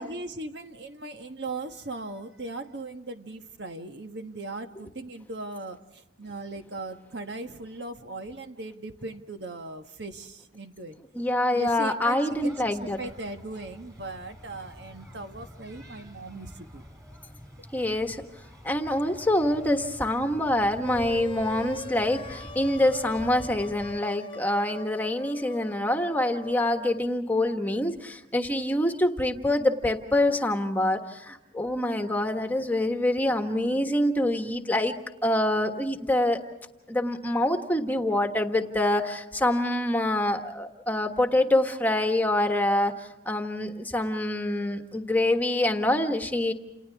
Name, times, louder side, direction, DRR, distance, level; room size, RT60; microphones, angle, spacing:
voice 1, 0.0-11.0 11.5-16.8, right 2 dB, 65° right, 6 dB, 1.4 m, -38 dB
voice 2, 11.1-13.0 17.7-18.2 18.6-34.9 35.2-36.4 36.9-46.5, left 1 dB, 10° left, 5 dB, 1.4 m, -25 dB
sound 1, 12.3-24.0, equal, 15° right, 3.7 m, -47 dB
sound 2, 20.8-27.0, left 2 dB, 25° left, 0.8 m, -42 dB
29.0 x 29.0 x 3.5 m, 0.97 s
head